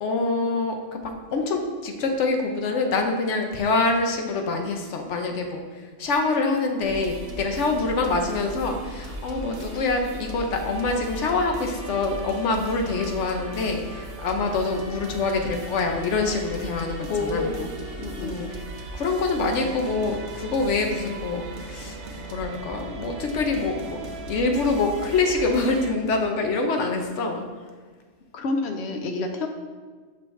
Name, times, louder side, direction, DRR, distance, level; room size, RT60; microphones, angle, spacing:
voice 1, 0.0-17.5 18.2-18.5 18.9-24.0 24.3-27.4, left 3 dB, 85° left, 4 dB, 1.1 m, -25 dB
sound 1, 6.8-25.9, right 2 dB, 80° right, 1.1 m, -37 dB
voice 2, 17.1-17.7 18.0-18.4 28.3-29.5, left 3 dB, 70° left, 5 dB, 0.9 m, -28 dB
6.3 x 5.6 x 3.2 m, 1.5 s
omnidirectional pair, 1.2 m